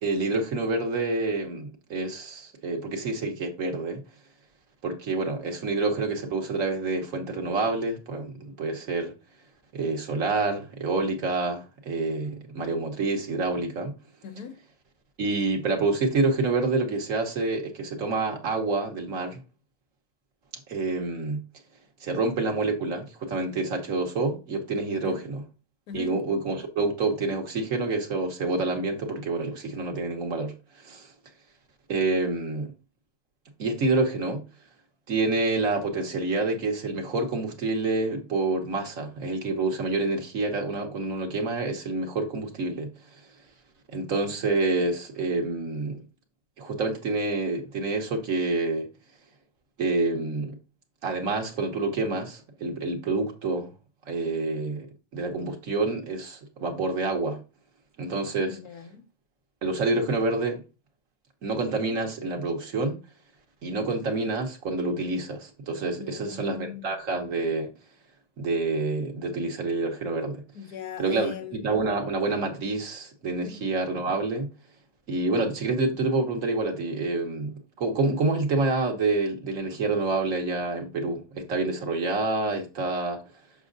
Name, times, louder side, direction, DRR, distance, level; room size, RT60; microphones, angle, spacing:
voice 1, 0.0-4.0 4.8-9.1 9.7-13.9 15.2-19.4 20.7-21.4 22.0-25.4 25.9-31.1 31.9-32.7 33.6-34.4 35.1-43.2 43.9-46.0 46.6-48.9 49.8-50.6 51.0-53.7 54.1-54.9 55.1-57.4 58.0-58.6 59.6-60.6 61.4-63.0 63.6-67.7 68.4-70.4 71.0-74.5 75.1-83.2, right 3 dB, 65° right, 1.5 m, -28 dB
voice 2, 14.2-14.6 24.9-25.2 25.9-26.2 58.5-59.0 66.0-67.0 70.5-71.6 73.4-73.6, left 8 dB, 90° left, 1.4 m, -40 dB
6.5 x 6.1 x 2.6 m
omnidirectional pair, 1.6 m